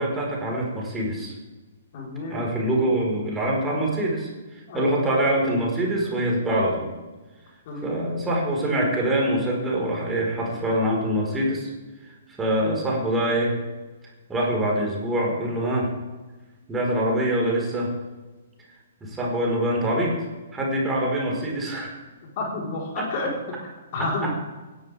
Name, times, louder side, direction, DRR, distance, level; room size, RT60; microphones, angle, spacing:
voice 1, 0.0-1.3 2.3-6.9 7.8-11.7 12.0-13.6 14.3-15.9 16.7-17.9 19.0-20.1 20.5-21.9 23.0-23.1 24.0-24.3, right 1 dB, 10° right, -2 dB, 4.8 m, -24 dB
voice 2, 1.9-2.4 3.6-4.0 4.7-5.0 7.7-8.0 22.4-23.3 23.9-24.3, left 2 dB, 40° left, -2 dB, 4.4 m, -30 dB
27.5 x 11.0 x 3.6 m, 1.2 s
figure-of-eight pair, 120°, 0 cm